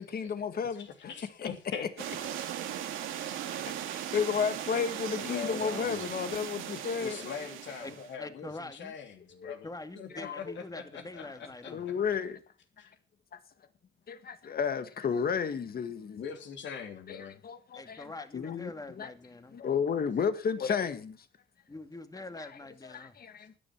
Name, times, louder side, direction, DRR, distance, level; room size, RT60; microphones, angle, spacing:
voice 1, 0.0-1.1 1.4-1.5 3.5-3.6 3.9-7.3 9.4-9.5 10.1-10.4 11.7-12.4 13.3-13.4 14.1-16.2 17.1-18.1 18.3-19.1 19.5-21.1 22.9-23.5, left 6 dB, 50° left, 1.8 m, -32 dB
voice 2, 0.8-1.9 3.6-3.7 5.2-6.1 7.0-9.7 9.9-11.7 12.8-12.9 16.2-17.4 20.6-20.9, left 7 dB, 65° left, 3.2 m, -41 dB
sound 1, 2.0-8.1, right 10 dB, 90° right, 2.0 m, -38 dB
voice 3, 7.8-9.0 9.6-11.8 17.7-19.6 21.7-23.2, left 2 dB, 20° left, 2.1 m, -44 dB
13.5 x 10.5 x 6.1 m
cardioid pair, 90°, 20 cm